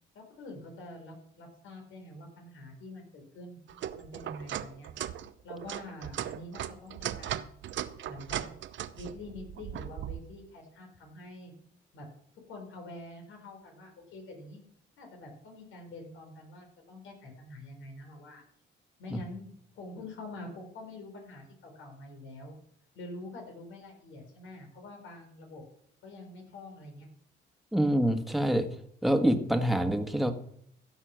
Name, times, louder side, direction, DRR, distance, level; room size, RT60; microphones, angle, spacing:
voice 1, 0.1-3.6 3.9-4.9 5.4-7.5 8.1-8.4 8.9-11.5 11.9-12.1 12.4-14.6 15.0-18.4 19.0-22.6 22.9-25.6 26.0-27.1, left 2 dB, 80° left, 2 dB, 4.6 m, -46 dB
sound 1, 3.7-10.2, right 11 dB, 70° right, 0.8 m, -38 dB
voice 2, 27.7-28.7 29.0-30.3, equal, ahead, 6 dB, 1.6 m, -26 dB
15.5 x 6.6 x 6.4 m, 0.67 s
cardioid pair, 90°, 20 cm